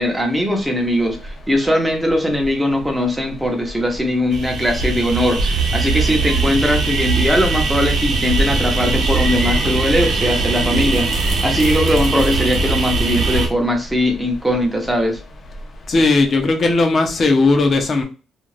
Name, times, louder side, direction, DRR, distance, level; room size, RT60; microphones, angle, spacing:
voice 1, 0.0-11.1 11.4-15.2, left 1 dB, 10° right, 3 dB, 0.9 m, -20 dB
sound 1, 4.3-13.5, right 3 dB, 75° right, 0.8 m, -20 dB
voice 2, 15.9-18.0, left 3 dB, 45° left, 4 dB, 0.7 m, -16 dB
2.5 x 2.3 x 3.2 m, 0.33 s
cardioid pair, 90°, 0 cm